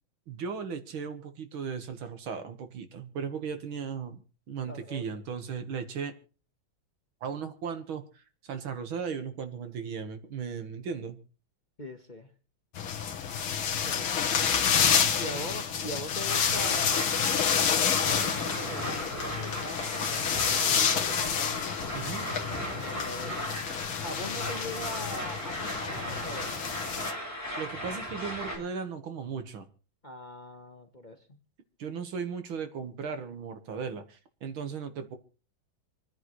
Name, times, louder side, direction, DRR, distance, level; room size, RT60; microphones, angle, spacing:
voice 1, 0.3-4.2 4.5-6.1 7.2-8.2 8.5-11.2 15.3-15.4 21.9-22.3 27.6-29.7 31.8-35.2, right 6 dB, 75° right, 8 dB, 2.2 m, -36 dB
voice 2, 4.7-5.0 11.8-12.3 13.8-14.7 15.2-17.1 18.0-21.5 22.7-23.5 24.0-26.7 30.0-31.4, equal, 30° left, 4 dB, 1.1 m, -41 dB
sound 1, 12.7-27.1, left 7 dB, 85° left, 2.2 m, -29 dB
sound 2, 14.0-24.2, left 1 dB, 50° right, 3.8 m, -52 dB
sound 3, 16.3-28.6, equal, 5° right, 5.1 m, -36 dB
27.5 x 9.9 x 3.1 m, 0.36 s
omnidirectional pair, 2.3 m